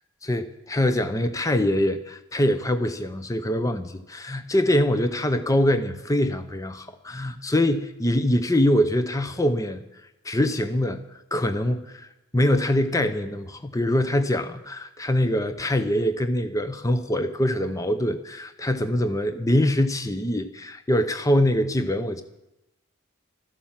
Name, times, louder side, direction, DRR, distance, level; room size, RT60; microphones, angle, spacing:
voice 1, 0.2-9.8 10.2-12.1 12.3-22.2, left 1 dB, 15° left, 9 dB, 0.7 m, -24 dB
13.0 x 11.5 x 7.4 m, 0.94 s
head